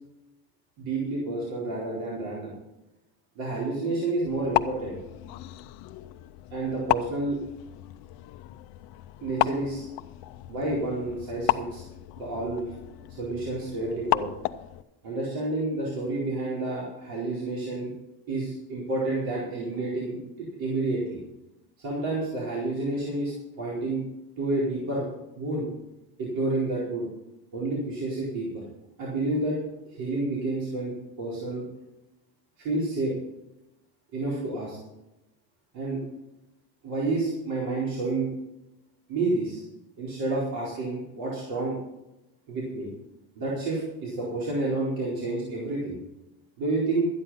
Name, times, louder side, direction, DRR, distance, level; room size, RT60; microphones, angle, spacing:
voice 1, 0.8-2.5 3.3-5.0 6.5-7.4 9.2-9.9 10.5-11.8 12.2-12.7 13.1-14.3 15.0-17.9 18.3-21.2 21.8-24.0 24.4-25.1 25.3-25.7 26.2-27.0 27.5-28.6 29.0-29.6 29.9-30.9 31.2-31.6 32.6-33.1 34.1-34.8 35.7-36.0 36.8-38.3 39.1-39.6 40.0-41.7 42.5-42.9 43.3-46.0 46.6-47.1, right 2 dB, 55° right, -5 dB, 4.4 m, -29 dB
sound 1, 4.3-14.8, left 17 dB, 60° left, 0.7 m, -33 dB
13.0 x 9.8 x 5.6 m, 0.94 s
cardioid pair, 165°, 41 cm